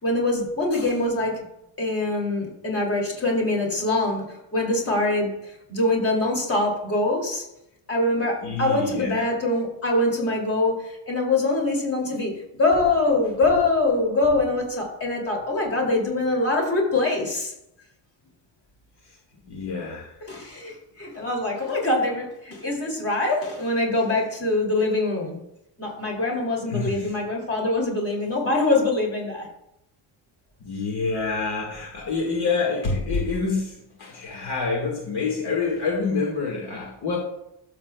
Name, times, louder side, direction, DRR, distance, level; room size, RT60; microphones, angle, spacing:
voice 1, 0.0-1.4 1.8-7.4 7.9-17.5 20.3-25.4 25.8-29.5, left 2 dB, 30° left, -1 dB, 3.0 m, -24 dB
voice 2, 8.4-9.3 19.5-20.1 26.7-27.1 30.6-37.2, left 4 dB, 50° left, -1 dB, 1.8 m, -27 dB
12.5 x 7.5 x 2.4 m, 0.84 s
cardioid pair, 135°, 50 cm